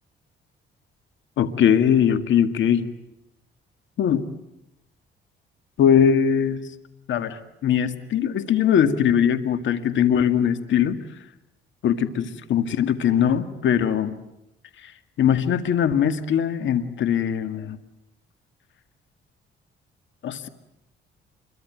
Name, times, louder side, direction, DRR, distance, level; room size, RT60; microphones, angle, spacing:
voice 1, 1.4-2.9 4.0-4.3 5.8-6.7 7.1-11.0 11.8-14.2 14.8-14.9 15.2-17.8 20.2-20.5, left 8 dB, 70° left, 11 dB, 2.0 m, -21 dB
27.0 x 23.0 x 9.3 m, 0.87 s
cardioid pair, 90°, 20 cm